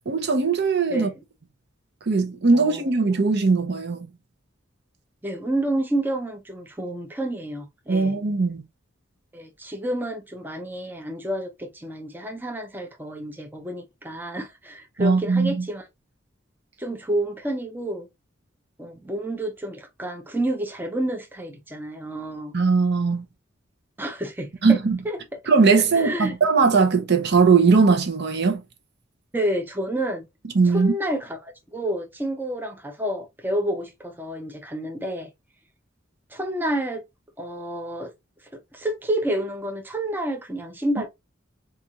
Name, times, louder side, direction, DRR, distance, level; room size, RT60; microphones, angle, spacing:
voice 1, 0.1-1.1 2.1-4.1 7.9-8.6 15.0-15.6 22.5-23.2 24.6-25.0 25.5-28.6 30.5-30.9, right 4 dB, 55° right, 0.7 m, -19 dB
voice 2, 0.9-1.2 2.5-2.9 5.2-8.2 9.3-15.9 16.8-18.1 18.8-22.5 24.0-24.8 25.0-25.2 25.9-26.4 29.3-30.3 30.6-35.3 36.3-37.0 37.4-38.1 38.5-41.1, right 1 dB, 10° right, 0.6 m, -29 dB
4.1 x 2.4 x 2.8 m
head